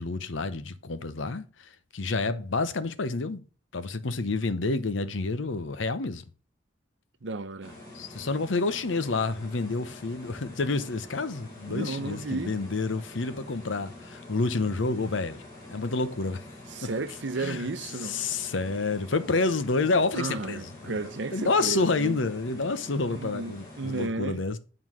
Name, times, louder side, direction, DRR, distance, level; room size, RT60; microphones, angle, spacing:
voice 1, 0.0-3.4 3.7-6.2 7.9-15.4 15.7-16.5 16.8-16.9 17.4-17.7 18.0-21.0 21.3-24.6, left 3 dB, 85° left, 0.8 m, -29 dB
voice 2, 7.2-7.7 11.7-12.5 16.7-18.2 20.1-22.2 23.1-24.4, right 3 dB, 70° right, 0.7 m, -33 dB
sound 1, 7.6-24.1, left 1 dB, 15° left, 3.3 m, -46 dB
9.1 x 3.9 x 6.2 m
head